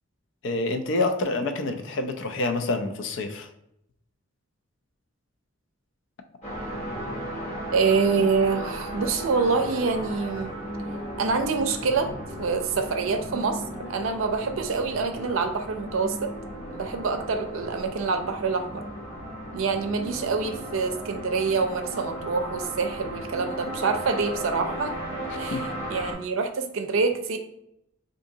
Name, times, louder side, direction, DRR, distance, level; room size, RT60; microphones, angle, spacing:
voice 1, 0.4-3.5 25.5-25.7, left 2 dB, 65° left, 6 dB, 0.4 m, -27 dB
sound 1, 6.4-26.1, right 1 dB, 30° left, 0.7 m, -35 dB
voice 2, 7.7-10.5 11.2-12.1 12.4-13.6 13.9-16.3 16.7-18.8 19.5-24.9 25.4-27.4, right 4 dB, 80° right, 5 dB, 0.5 m, -26 dB
3.7 x 2.6 x 2.6 m, 0.79 s
head